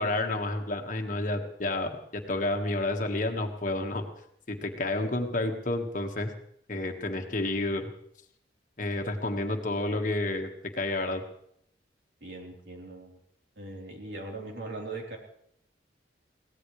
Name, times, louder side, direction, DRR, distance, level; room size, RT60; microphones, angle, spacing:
voice 1, 0.0-4.0 4.5-6.3 6.7-7.9 8.8-11.2, left 2 dB, 45° left, 4 dB, 1.6 m, -30 dB
voice 2, 12.2-13.2 13.6-15.2, right 2 dB, 70° right, -1 dB, 3.8 m, -40 dB
22.5 x 17.5 x 3.3 m, 0.70 s
head